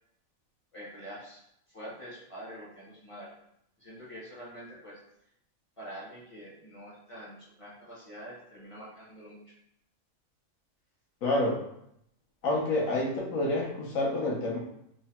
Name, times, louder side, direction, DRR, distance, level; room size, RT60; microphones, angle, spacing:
voice 1, 0.7-3.3 3.8-5.0 5.8-9.4, equal, 35° left, -7 dB, 0.5 m, -46 dB
voice 2, 11.2-11.6 12.4-14.6, left 2 dB, 80° left, -3 dB, 1.0 m, -28 dB
3.1 x 2.1 x 2.8 m, 0.76 s
omnidirectional pair, 1.4 m